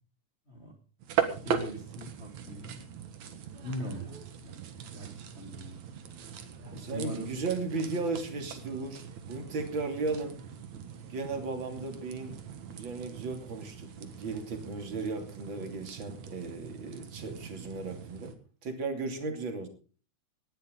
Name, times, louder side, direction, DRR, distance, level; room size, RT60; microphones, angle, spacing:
sound 1, 1.0-18.4, right 8 dB, 65° right, 2.8 m, -40 dB
voice 1, 1.4-2.8 3.6-4.7 4.9-5.8 6.6-7.3, equal, 20° left, 1 dB, 3.4 m, -41 dB
voice 2, 6.7-10.4 10.7-18.3 18.6-19.7, right 3 dB, 40° right, 5 dB, 3.3 m, -36 dB
19.0 x 11.5 x 3.8 m, 0.38 s
omnidirectional pair, 3.6 m